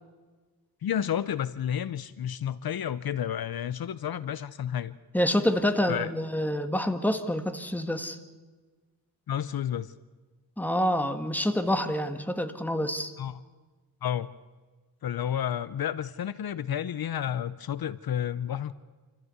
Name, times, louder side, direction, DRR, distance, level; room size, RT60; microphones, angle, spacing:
voice 1, 0.8-5.0 5.9-6.1 9.3-9.9 13.2-13.4 14.0-14.3 15.0-18.7, left 9 dB, 65° left, 16 dB, 0.7 m, -31 dB
voice 2, 5.1-8.2 10.6-13.1, equal, 5° left, 8 dB, 1.5 m, -27 dB
27.0 x 14.5 x 8.1 m, 1.4 s
wide cardioid pair, 105°, 39 cm